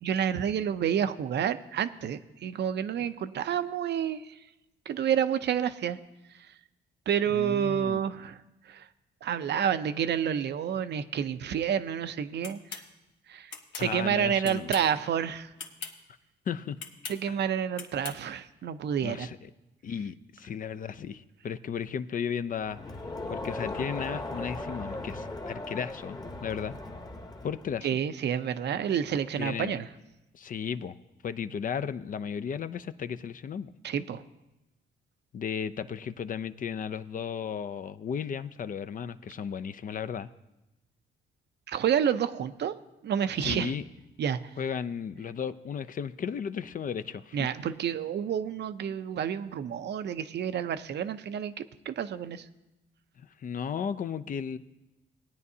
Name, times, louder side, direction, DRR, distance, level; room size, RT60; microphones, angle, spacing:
voice 1, 0.0-4.4 4.9-6.0 6.3-6.5 7.1-8.9 9.2-12.8 13.3-15.5 17.1-19.3 27.8-29.9 33.8-34.2 41.7-42.7 43.0-43.8 44.2-44.5 47.3-52.5, right 8 dB, 60° right, 11 dB, 0.6 m, -29 dB
voice 2, 7.3-8.0 13.8-14.7 16.5-16.8 19.0-19.4 19.8-22.8 23.3-26.7 27.4-27.9 29.4-29.8 30.3-31.0 31.2-33.7 35.3-40.3 43.4-43.8 44.6-47.5 53.2-54.6, left 7 dB, 45° left, 11 dB, 0.5 m, -34 dB
sound 1, 12.4-12.9 13.5-13.9 14.4-14.9 15.6-15.9 16.8-17.2 17.8-18.2, left 5 dB, 70° left, 1.4 m, -40 dB
Crowd, 22.6-27.8, left 2 dB, 20° left, 1.1 m, -38 dB
19.0 x 9.5 x 2.8 m, 0.97 s
cardioid pair, 90°, 20 cm